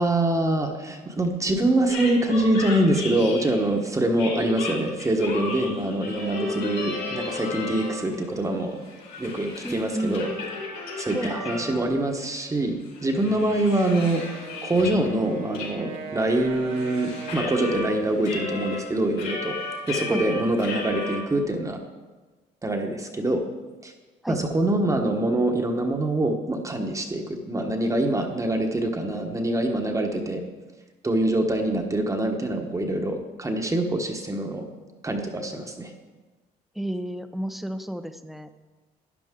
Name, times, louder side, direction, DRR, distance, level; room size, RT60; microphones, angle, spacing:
voice 1, 0.0-8.8 9.2-10.3 11.0-12.7 13.0-19.5 19.9-21.8 22.6-23.4 23.8-23.9 24.3-30.4 31.0-34.6 35.0-35.9, right 1 dB, 20° right, 3 dB, 1.2 m, -24 dB
sound 1, 1.9-3.7 4.2-8.2 8.5-12.0 12.3-12.4 12.8-15.1 15.5-15.7 15.9-17.9 18.2-21.2, left 3 dB, 80° left, 4.2 m, -34 dB
voice 2, 9.6-10.3 11.1-12.0 20.1-20.2 24.2-24.4 36.8-38.5, equal, ahead, 9 dB, 0.6 m, -32 dB
Wind instrument woodwind instrument, 14.3-18.6, right 5 dB, 85° right, 1.6 m, -40 dB
12.0 x 10.0 x 3.8 m, 1.3 s
cardioid pair, 110°, 17 cm